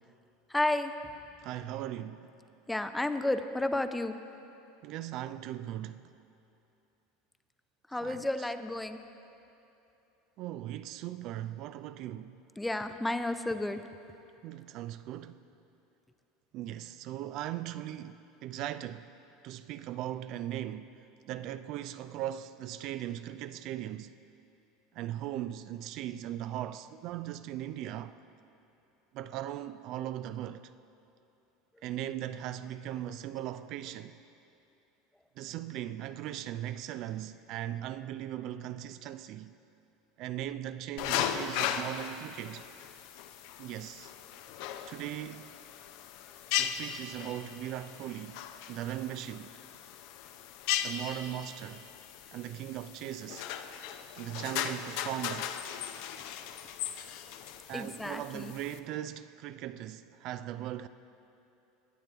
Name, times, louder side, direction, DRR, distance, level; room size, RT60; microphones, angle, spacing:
voice 1, 0.5-0.9 2.7-4.1 7.9-9.0 12.6-13.8 57.7-58.5, left 2 dB, 5° left, 0.5 m, -31 dB
voice 2, 1.4-2.3 4.8-6.1 8.0-8.5 10.4-12.4 14.4-15.4 16.5-19.1 19.4-24.2 24.9-28.2 29.1-30.7 31.8-34.2 35.4-39.6 40.2-42.7 43.6-44.1 44.9-45.6 46.6-49.6 50.8-51.9 52.3-53.5 54.2-55.5 57.7-60.9, right 12 dB, 55° right, 0.3 m, -39 dB
sound 1, 41.0-58.8, left 10 dB, 65° left, 0.5 m, -38 dB
19.0 x 7.5 x 3.4 m
supercardioid pair, 105°, 0 cm